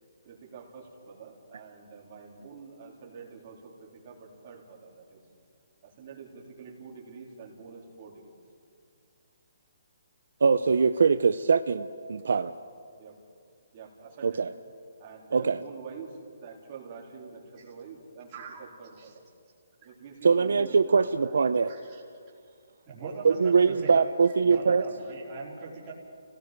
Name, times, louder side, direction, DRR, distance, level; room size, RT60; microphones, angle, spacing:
voice 1, 0.2-5.2 5.8-8.4 13.0-13.2 13.7-14.4 15.0-18.3 18.6-19.3 19.8-21.4 23.0-23.1, right 5 dB, 35° right, -2 dB, 3.7 m, -46 dB
voice 2, 10.4-12.5 14.2-14.5 15.3-15.6 20.2-21.7 23.2-24.8, right 5 dB, 75° right, 11 dB, 0.6 m, -22 dB
voice 3, 18.3-18.6 19.0-19.1 21.7-22.0 22.4-22.5 22.9-24.1 24.4-25.9, right 4 dB, 20° right, -8 dB, 4.1 m, -40 dB
29.5 x 17.5 x 5.1 m, 2.2 s
hypercardioid pair, 165°, 0 cm